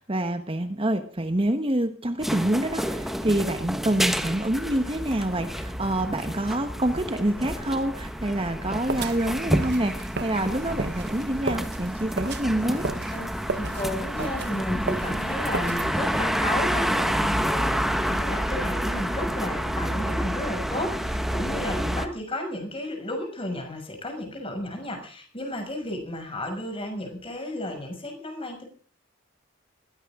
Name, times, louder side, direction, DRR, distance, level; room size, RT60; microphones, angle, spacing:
voice 1, 0.0-12.9, right 1 dB, 25° right, 8 dB, 1.2 m, -27 dB
sound 1, 2.2-22.1, equal, ahead, 1.4 m, -29 dB
sound 2, 8.9-16.3, right 3 dB, 55° right, 1.1 m, -34 dB
voice 2, 13.1-28.7, left 1 dB, 25° left, 4 dB, 6.3 m, -33 dB
21.0 x 16.5 x 3.7 m, 0.44 s
head